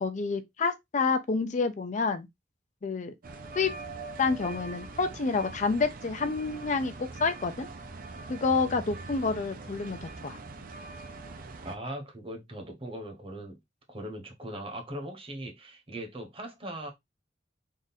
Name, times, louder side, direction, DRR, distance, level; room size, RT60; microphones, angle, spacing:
voice 1, 0.0-2.3 2.8-3.1 3.6-3.7 4.2-7.7 8.3-10.4, left 4 dB, 40° left, 0.4 m, -28 dB
sound 1, 3.2-11.7, right 3 dB, 50° right, 0.6 m, -42 dB
voice 2, 11.6-13.6 13.9-16.9, right 1 dB, 30° right, 1.1 m, -39 dB
3.7 x 2.5 x 4.0 m
head